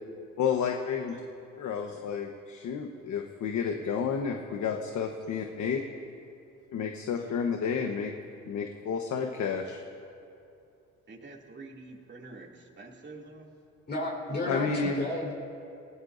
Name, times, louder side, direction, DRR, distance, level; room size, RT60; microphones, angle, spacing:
voice 1, 0.4-1.2 1.6-5.8 6.7-8.1 8.5-9.8 14.4-15.1, left 6 dB, 70° left, 3 dB, 1.2 m, -31 dB
voice 2, 11.1-13.5, right 3 dB, 40° right, -1 dB, 2.6 m, -47 dB
voice 3, 13.9-15.3, left 1 dB, 35° left, -2 dB, 4.4 m, -32 dB
29.5 x 18.0 x 2.7 m, 2.6 s
cardioid pair, 90°, 30 cm